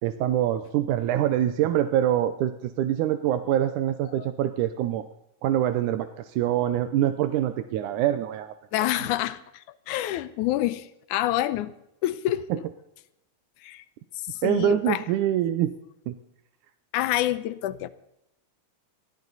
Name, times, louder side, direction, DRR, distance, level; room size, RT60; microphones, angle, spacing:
voice 1, 0.0-5.1 5.4-8.5 12.5-12.6 14.4-15.7 16.1-16.2, right 11 dB, 85° right, 10 dB, 2.2 m, -25 dB
voice 2, 8.7-11.7 12.0-12.4 13.6-13.8 14.3-15.1 16.9-17.9, left 14 dB, 85° left, 14 dB, 2.2 m, -27 dB
20.0 x 14.0 x 4.0 m, 0.85 s
omnidirectional pair, 3.5 m